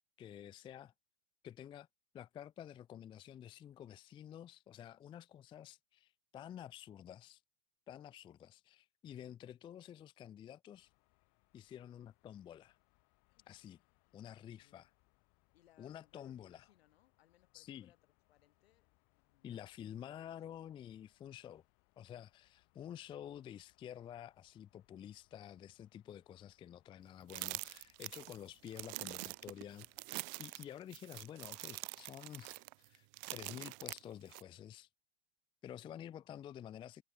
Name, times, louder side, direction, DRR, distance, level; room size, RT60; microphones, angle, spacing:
voice 1, 0.2-0.9 1.4-1.9 2.1-7.4 7.9-10.9 11.5-12.8 13.5-13.8 14.1-14.9 15.8-16.6 17.5-17.9 19.4-21.6 22.0-29.9 30.4-34.9 35.6-37.0, left 10 dB, 15° left, 0.4 m, -50 dB
sound 1, 10.7-30.0, left 29 dB, 50° left, 5.8 m, -77 dB
voice 2, 14.6-14.9 15.5-20.0 20.3-21.0, left 13 dB, 70° left, 3.2 m, -72 dB
sound 2, 27.3-34.4, right 29 dB, 45° right, 0.5 m, -45 dB
hypercardioid pair, 105°, 32 cm